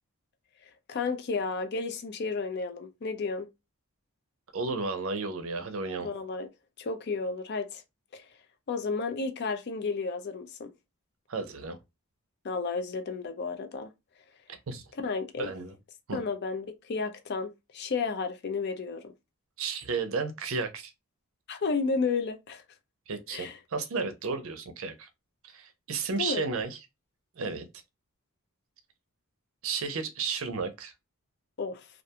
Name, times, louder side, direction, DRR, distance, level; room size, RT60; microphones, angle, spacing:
voice 1, 0.9-3.5 6.0-6.5 6.8-7.8 8.1-8.3 8.7-10.7 12.4-13.9 15.0-15.5 16.1-19.0 21.5-22.6 23.3-23.6 26.2-26.5 31.6-31.9, left 4 dB, 50° left, 0.4 m, -32 dB
voice 2, 4.5-6.1 11.3-11.8 14.7-14.8 15.4-15.8 16.1-16.2 19.6-20.9 23.1-25.1 25.4-26.8 27.4-27.7 29.6-30.9, right 4 dB, 65° right, 0.5 m, -33 dB
2.4 x 2.2 x 2.7 m
head